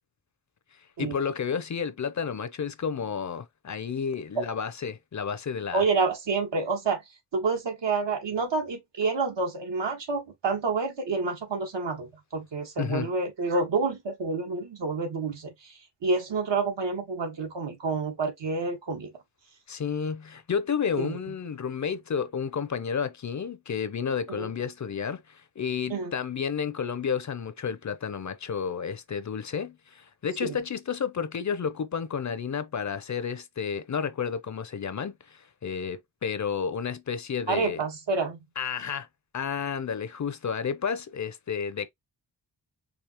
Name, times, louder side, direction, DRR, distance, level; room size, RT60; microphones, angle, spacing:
voice 1, 1.0-5.8 12.8-13.1 19.7-37.8 38.6-39.1 39.3-41.9, left 6 dB, 45° left, 0.5 m, -31 dB
voice 2, 5.7-7.0 7.3-19.1 21.0-21.2 24.3-24.5 25.9-26.1 30.4-30.6 37.5-38.4, right 4 dB, 80° right, 1.5 m, -28 dB
4.9 x 2.7 x 2.9 m
wide cardioid pair, 120°, 42 cm